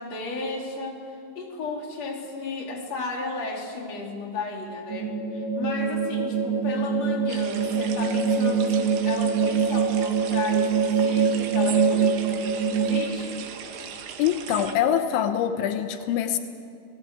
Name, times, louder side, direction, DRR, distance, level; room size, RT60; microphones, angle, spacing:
voice 1, 0.0-13.5, left 3 dB, 40° left, 3.9 m, -34 dB
sound 1, 4.9-13.0, right 5 dB, 50° right, 2.0 m, -24 dB
sound 2, 7.3-14.7, right 8 dB, 80° right, 3.8 m, -39 dB
voice 2, 14.2-16.4, left 10 dB, 85° left, 3.4 m, -24 dB
29.0 x 18.5 x 8.3 m
omnidirectional pair, 5.2 m